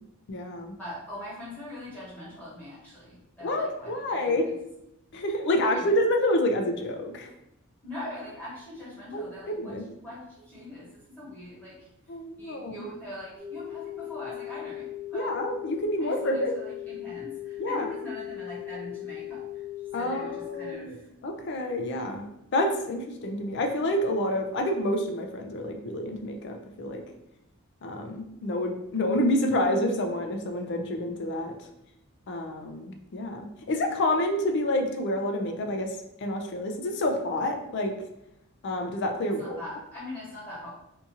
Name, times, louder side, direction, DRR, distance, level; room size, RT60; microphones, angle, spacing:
voice 1, 0.3-0.7 3.4-4.4 5.1-7.3 9.1-9.2 9.6-9.8 12.1-12.8 15.1-16.5 17.6-17.9 19.9-21.0 21.2-22.3 22.5-27.0 27.8-31.5 32.3-35.9 36.2-37.9 38.6-39.6, left 1 dB, 50° left, 4 dB, 0.4 m, -28 dB
voice 2, 0.8-4.5 5.4-5.9 7.8-11.9 12.4-15.3 16.0-19.6 20.0-21.1 39.2-40.7, left 1 dB, 5° left, -10 dB, 1.1 m, -42 dB
sound 1, 13.4-20.8, left 14 dB, 25° right, 0.5 m, -38 dB
2.7 x 2.4 x 2.6 m, 0.85 s
head